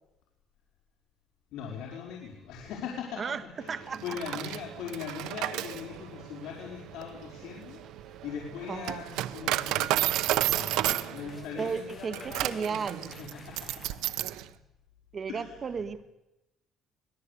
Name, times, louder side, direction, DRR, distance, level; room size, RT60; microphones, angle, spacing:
voice 1, 1.5-14.2 15.3-15.8, left 7 dB, 75° left, -2 dB, 5.3 m, -41 dB
sound 1, 3.6-11.4, right 8 dB, 60° right, 1.5 m, -52 dB
voice 2, 3.7-4.2 8.7-9.0 11.6-13.1 15.1-16.0, right 5 dB, 35° right, 10 dB, 1.6 m, -34 dB
Coin (dropping), 3.9-14.4, right 15 dB, 85° right, 1.0 m, -32 dB
sound 2, 10.7-14.0, left 5 dB, 30° left, 1.6 m, -53 dB
25.5 x 19.0 x 8.5 m, 0.94 s
cardioid pair, 140°, 0 cm